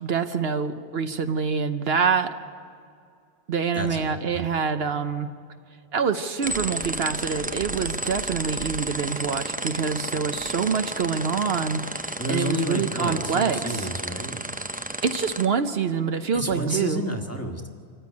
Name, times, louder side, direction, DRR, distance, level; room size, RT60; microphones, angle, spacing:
voice 1, 0.0-2.3 3.5-5.3 5.9-13.9 15.0-17.0, right 6 dB, 65° right, 8 dB, 1.0 m, -26 dB
voice 2, 3.7-4.5 12.2-14.4 16.3-17.7, equal, 15° left, 3 dB, 1.4 m, -30 dB
sound 1, 6.4-15.5, right 1 dB, 15° right, 0.4 m, -32 dB
25.0 x 14.5 x 9.5 m, 2.3 s
omnidirectional pair, 1.1 m